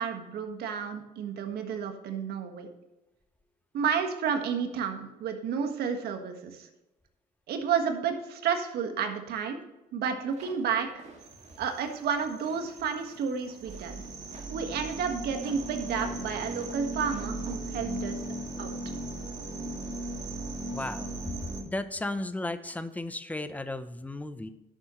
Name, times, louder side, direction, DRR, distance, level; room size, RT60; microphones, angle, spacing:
voice 1, 0.0-2.7 3.7-6.7 7.5-9.6 9.9-11.0 11.6-13.9 14.5-18.2 18.6-18.8, right 6 dB, 70° right, 5 dB, 1.6 m, -31 dB
sound 1, 10.3-17.5, right 4 dB, 40° right, 2.2 m, -51 dB
sound 2, 11.2-21.6, right 1 dB, 25° right, 2.1 m, -37 dB
voice 2, 20.7-24.5, left 2 dB, 10° left, 12 dB, 0.7 m, -35 dB
11.0 x 7.6 x 3.1 m, 1.0 s
cardioid pair, 110°, 17 cm